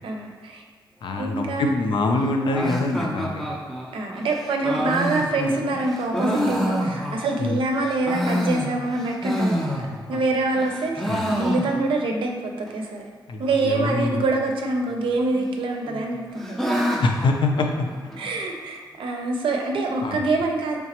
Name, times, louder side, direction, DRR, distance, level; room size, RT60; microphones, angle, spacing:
voice 1, 0.0-0.6 1.2-1.8 3.9-9.8 10.1-13.0 13.4-16.6 18.2-20.8, right 2 dB, 80° right, 2 dB, 0.5 m, -25 dB
voice 2, 1.0-3.5 7.4-7.6 11.1-11.2 13.3-14.2 17.0-17.9 20.0-20.2, left 2 dB, 70° left, 3 dB, 0.5 m, -24 dB
sound 1, 2.5-7.5 7.9-10.3 10.5-12.1 12.4-12.5 12.7-12.8 13.4-13.8 14.9-15.5 15.8-18.3, equal, 5° left, 0.5 m, -28 dB
3.9 x 3.4 x 2.9 m, 1.5 s
wide cardioid pair, 100°, 9 cm